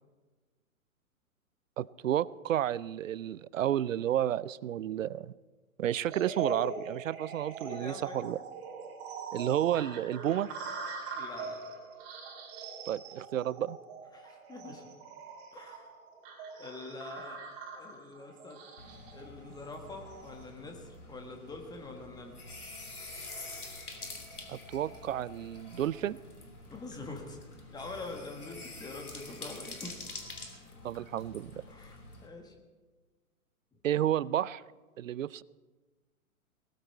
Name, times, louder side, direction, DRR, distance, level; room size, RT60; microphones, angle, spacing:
voice 1, 1.8-5.3 5.8-8.4 9.3-10.5 12.9-13.8 24.5-26.2 30.8-31.6 33.8-34.6 35.0-35.4, right 11 dB, 65° right, 21 dB, 0.5 m, -31 dB
sound 1, 6.1-20.4, right 5 dB, 30° right, 3.5 m, -42 dB
voice 2, 7.6-8.4 11.1-11.6 14.1-14.8 15.5-16.0 16.6-17.4 17.7-18.6 19.1-22.4 26.7-27.4 27.7-30.0 31.7-32.6 33.7-33.8, left 3 dB, 10° left, 3 dB, 1.4 m, -45 dB
sound 2, 18.8-32.3, left 2 dB, 80° left, 3.0 m, -47 dB
19.0 x 13.5 x 4.4 m, 1.3 s
figure-of-eight pair, 120°, 44 cm